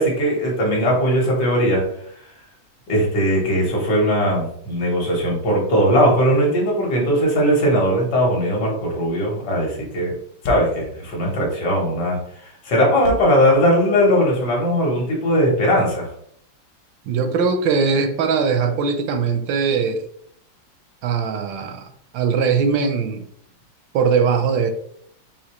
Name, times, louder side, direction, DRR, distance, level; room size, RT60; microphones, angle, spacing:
voice 1, 0.0-1.8 2.9-10.2 10.4-16.1, equal, 65° left, -1 dB, 1.8 m, -19 dB
Thump thud, 10.4-14.4, right 2 dB, 90° left, 1.5 m, -33 dB
voice 2, 17.1-20.1 21.0-23.2 23.9-24.7, right 5 dB, 80° right, 8 dB, 1.3 m, -20 dB
5.1 x 2.9 x 2.9 m, 0.66 s
omnidirectional pair, 2.1 m